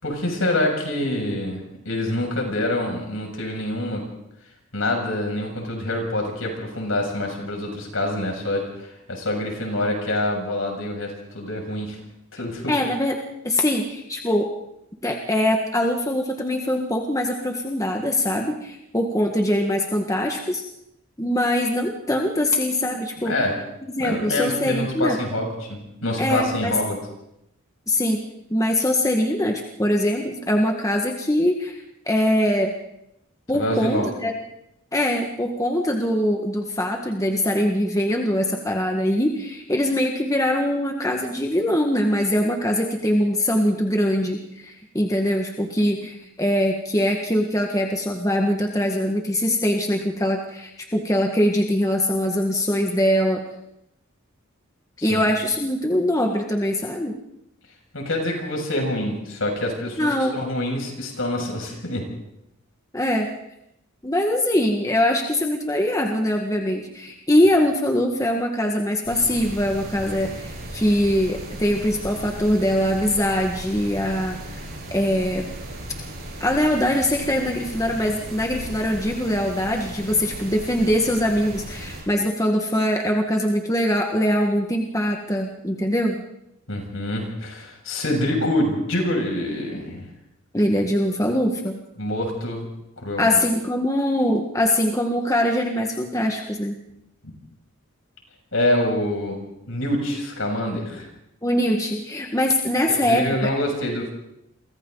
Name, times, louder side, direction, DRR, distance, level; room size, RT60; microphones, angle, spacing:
voice 1, 0.0-4.0 4.7-12.0 12.3-12.7 23.2-23.6 24.0-27.0 33.5-34.1 55.0-55.2 57.9-62.1 86.7-90.1 92.0-92.7 93.0-93.4 97.2-97.3 98.5-101.1 102.9-104.1, left 1 dB, 70° left, 1 dB, 7.1 m, -26 dB
voice 2, 12.7-13.2 13.4-14.5 15.0-20.6 21.2-23.3 24.0-25.2 26.2-26.8 27.9-28.2 28.5-32.7 33.5-34.3 34.9-53.4 55.0-57.1 60.0-60.4 62.9-63.3 64.0-74.6 74.9-75.5 76.4-86.2 90.5-91.8 93.2-96.7 101.4-103.5, left 1 dB, 15° left, 2 dB, 1.7 m, -22 dB
sound 1, 69.0-82.0, right 1 dB, 45° right, 7.8 m, -36 dB
29.5 x 24.5 x 4.1 m, 0.82 s
head